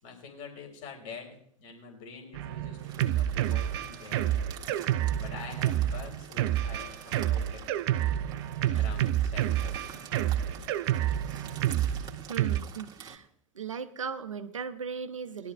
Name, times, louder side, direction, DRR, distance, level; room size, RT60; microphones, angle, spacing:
voice 1, 0.0-4.5 4.8-7.6 8.6-9.7, left 5 dB, 45° left, 2 dB, 3.7 m, -46 dB
Drum kit, 2.3-12.6, right 12 dB, 50° right, 0.6 m, -29 dB
sound 1, 2.8-13.2, right 7 dB, 25° right, 1.8 m, -48 dB
voice 2, 12.3-13.3 13.5-15.5, right 6 dB, 75° right, 10 dB, 0.9 m, -37 dB
20.5 x 11.5 x 2.3 m, 0.67 s
figure-of-eight pair, 85°, 17 cm